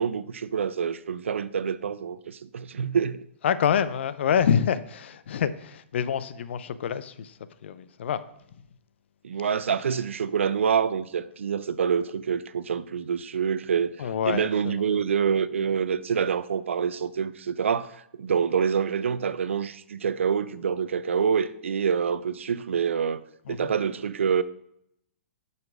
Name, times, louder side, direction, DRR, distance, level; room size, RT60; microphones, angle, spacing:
voice 1, 0.0-3.2 9.2-17.9 18.2-23.2 23.5-24.4, right 7 dB, 80° right, 0.6 m, -26 dB
voice 2, 3.4-8.2 14.0-15.0 23.5-23.7, left 8 dB, 65° left, 0.7 m, -27 dB
7.6 x 5.7 x 6.2 m
hypercardioid pair, 125°, 7 cm